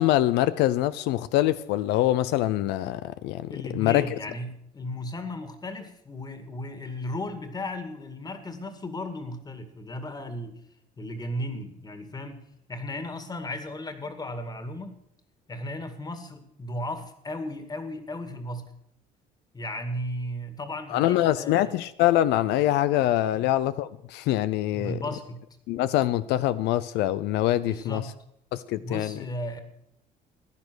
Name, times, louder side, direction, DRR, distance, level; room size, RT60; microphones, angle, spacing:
voice 1, 0.0-4.1 20.9-25.0 25.7-28.0 28.5-29.2, left 14 dB, 90° left, 14 dB, 0.6 m, -24 dB
voice 2, 3.5-10.6 11.0-12.4 12.7-14.9 15.5-18.7 19.5-21.7 24.7-25.4 27.6-28.1 28.8-29.6, left 1 dB, 25° left, 9 dB, 2.1 m, -35 dB
15.5 x 10.5 x 6.3 m, 0.75 s
cardioid pair, 110°, 17 cm